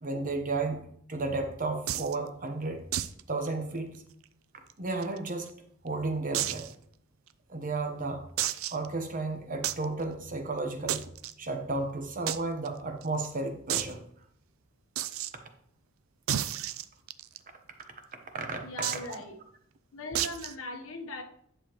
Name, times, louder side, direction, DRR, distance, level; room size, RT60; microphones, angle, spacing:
voice 1, 0.0-2.8 3.3-4.0 4.8-5.5 5.8-6.7 7.5-8.3 8.7-11.1 11.4-14.0 18.3-18.6 18.9-19.2, right 3 dB, 40° right, 5 dB, 1.0 m, -33 dB
sound 1, 1.9-2.2 2.9-3.2 3.5-3.6 4.0-4.1 4.7-5.5 6.3-6.7 7.3-7.4 8.4-8.9 9.6-9.9 10.9-11.3 12.3-12.4 12.7-12.8 13.0-13.1 13.7-13.9 15.0-15.3 16.3-17.4 18.8-19.2 20.2-20.5, right 11 dB, 80° right, 0.4 m, -31 dB
voice 2, 18.6-19.4 19.9-21.2, left 1 dB, 75° left, 4 dB, 1.1 m, -39 dB
10.5 x 6.6 x 3.1 m, 0.70 s
head